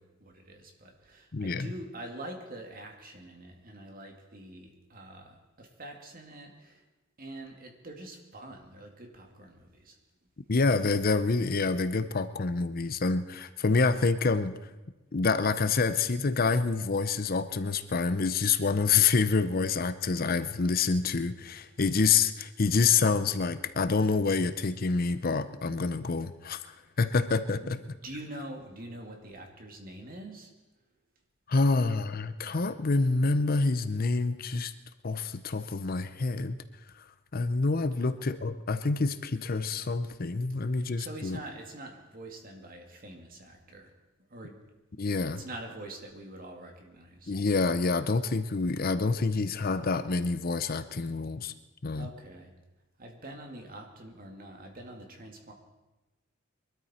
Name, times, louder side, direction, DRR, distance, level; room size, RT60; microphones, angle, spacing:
voice 1, 0.0-6.8 7.2-10.0 27.6-30.5 38.0-38.1 40.7-43.9 44.3-44.7 45.0-47.3 51.9-52.5 53.0-55.5, right 1 dB, 45° right, 2 dB, 2.4 m, -45 dB
voice 2, 1.3-1.7 10.5-14.5 15.1-27.8 31.5-34.7 35.0-36.6 37.3-41.4 45.0-45.4 47.3-51.5 51.8-52.1, left 4 dB, 45° left, 12 dB, 0.6 m, -27 dB
23.0 x 13.0 x 4.3 m, 1.1 s
head